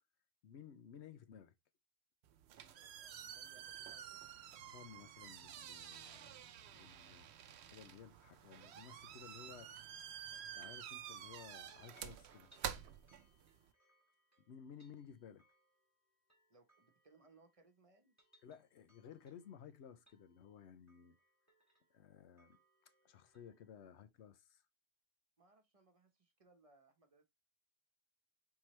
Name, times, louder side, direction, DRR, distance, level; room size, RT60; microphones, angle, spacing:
voice 1, 0.4-1.5 4.6-7.3 7.6-9.7 10.5-12.5 14.5-15.4 18.4-21.2 21.9-22.6 23.0-24.6, left 8 dB, 80° left, 1.0 m, -56 dB
sound 1, 2.2-13.7, right 9 dB, 75° right, 0.8 m, -50 dB
voice 2, 2.7-4.2 12.7-12.8 16.5-18.1 25.4-27.2, right 3 dB, 35° right, 1.0 m, -68 dB
sound 2, 11.7-17.7 18.0-23.7, left 1 dB, 15° left, 1.8 m, -74 dB
4.4 x 3.8 x 3.1 m
omnidirectional pair, 1.1 m